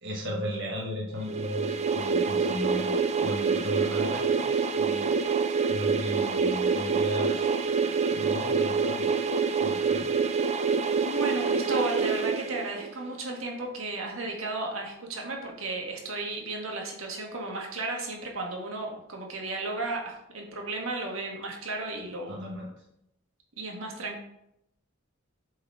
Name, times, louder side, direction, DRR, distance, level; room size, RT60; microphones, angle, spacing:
voice 1, 0.0-5.1 5.7-7.5 7.8-9.1 9.6-10.1 22.3-22.7, equal, 60° right, -2 dB, 1.1 m, -35 dB
sound 1, 1.3-13.1, right 5 dB, 35° right, 0.4 m, -26 dB
voice 2, 11.0-22.5 23.6-24.3, right 2 dB, 85° right, 0 dB, 1.6 m, -34 dB
7.5 x 4.0 x 4.6 m, 0.79 s
head